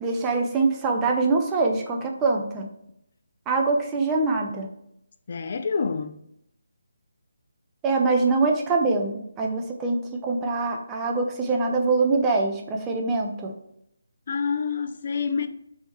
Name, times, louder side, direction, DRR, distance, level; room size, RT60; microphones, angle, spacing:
voice 1, 0.0-2.7 3.5-4.7 7.8-13.5, right 3 dB, 15° right, 0.5 m, -24 dB
voice 2, 5.3-6.2 14.3-15.5, left 5 dB, 45° left, 0.3 m, -27 dB
3.4 x 3.1 x 4.1 m
figure-of-eight pair, 160°, 0 cm